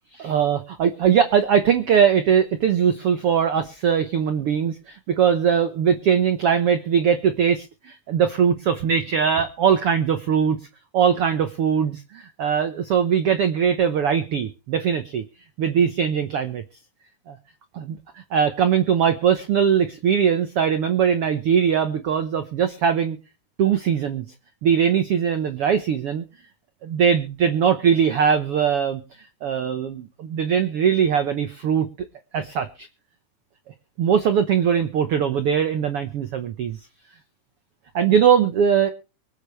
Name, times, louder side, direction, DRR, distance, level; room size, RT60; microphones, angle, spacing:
voice 1, 0.1-10.6 10.9-15.2 15.6-16.6 17.3-17.4 17.7-18.0 18.3-23.2 23.6-24.3 24.6-26.2 26.8-31.9 32.3-32.9 34.0-36.8 37.9-38.9, right 7 dB, 80° right, 9 dB, 1.2 m, -21 dB
24.0 x 8.8 x 3.2 m, 0.33 s
omnidirectional pair, 4.2 m